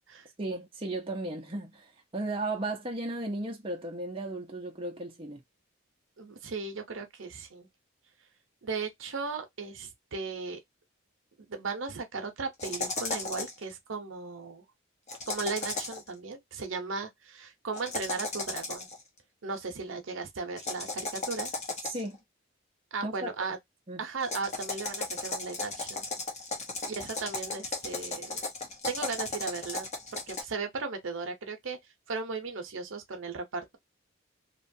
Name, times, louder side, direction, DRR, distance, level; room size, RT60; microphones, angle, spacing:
voice 1, 0.4-5.4 21.8-22.2 23.0-23.3 23.9-24.0, right 2 dB, 25° right, 0.6 m, -35 dB
voice 2, 6.2-7.7 8.6-10.6 11.5-14.6 15.3-18.9 19.4-21.5 22.9-23.6 24.0-26.1 26.8-28.4 28.9-29.9 30.3-31.8 32.1-33.8, right 4 dB, 65° right, 0.7 m, -36 dB
sound 1, 12.6-13.6 15.1-16.1 17.7-19.0 20.6-22.1 24.2-30.4, left 3 dB, 35° left, 0.8 m, -35 dB
2.9 x 2.3 x 2.6 m
head